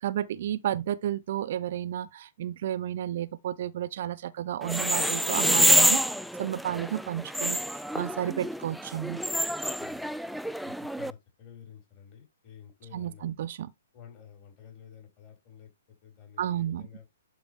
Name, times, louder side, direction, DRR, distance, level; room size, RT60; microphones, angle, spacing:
voice 1, 0.0-6.0 6.4-7.6 7.9-9.2 12.9-13.7 16.4-16.9, right 11 dB, 50° right, 0.5 m, -32 dB
sound 1, 4.6-11.1, equal, ahead, 0.4 m, -27 dB
voice 2, 9.8-10.1 10.6-13.3 13.9-17.0, left 8 dB, 35° left, 5.1 m, -51 dB
11.0 x 5.0 x 3.4 m
figure-of-eight pair, 120°, 0 cm